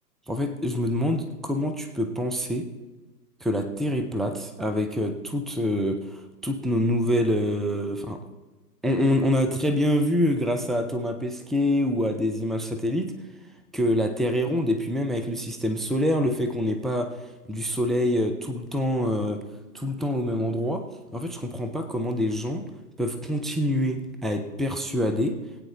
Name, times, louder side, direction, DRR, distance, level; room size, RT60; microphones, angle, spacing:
voice 1, 0.3-2.7 3.4-8.2 8.8-13.1 13.7-17.1 17.5-19.4 19.7-20.9 21.1-22.7 23.0-25.4, left 1 dB, ahead, 7 dB, 0.3 m, -26 dB
23.0 x 8.7 x 3.0 m, 1.2 s
hypercardioid pair, 170°, 50 cm